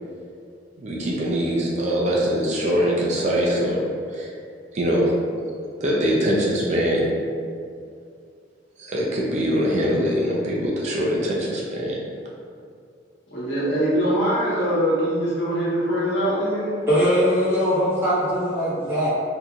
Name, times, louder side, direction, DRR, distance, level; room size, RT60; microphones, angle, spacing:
voice 1, 0.8-4.3 4.7-5.2 5.8-7.2 8.8-12.0, equal, 40° right, -4 dB, 0.5 m, -23 dB
voice 2, 13.3-16.8, equal, 75° left, -9 dB, 1.4 m, -23 dB
voice 3, 16.9-19.1, equal, 15° right, -12 dB, 1.4 m, -21 dB
4.3 x 2.7 x 2.4 m, 2.3 s
head